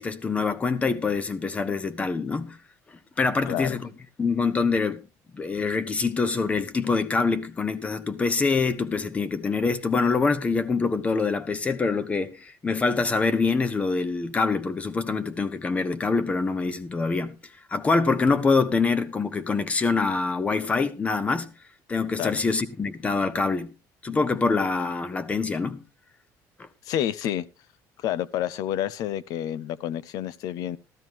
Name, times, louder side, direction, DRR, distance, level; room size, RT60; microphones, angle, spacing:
voice 1, 0.0-2.6 3.2-3.9 4.2-5.0 5.3-17.4 17.7-21.5 21.9-23.7 24.0-25.8, left 4 dB, 20° left, 1.0 m, -25 dB
voice 2, 3.5-3.8 22.2-22.4 26.9-27.5 28.0-30.8, left 11 dB, 60° left, 0.7 m, -29 dB
14.0 x 13.0 x 3.0 m
cardioid pair, 145°, 7 cm